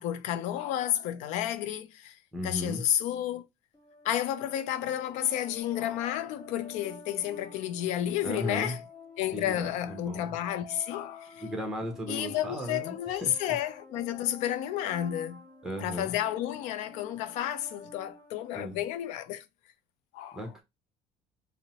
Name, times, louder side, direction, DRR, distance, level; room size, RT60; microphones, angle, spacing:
voice 1, 0.0-3.4 4.0-8.8 9.2-11.4 12.1-15.4 15.8-19.4 20.1-20.4, left 11 dB, 75° left, 0.4 m, -31 dB
voice 2, 2.3-2.8 8.2-8.8 9.3-10.3 11.4-13.5 15.6-16.1 18.5-18.8 20.3-20.6, left 1 dB, 5° right, 0.8 m, -36 dB
sound 1, 3.7-19.2, left 3 dB, 35° left, 1.2 m, -50 dB
2.7 x 2.0 x 2.8 m
cardioid pair, 110°, 12 cm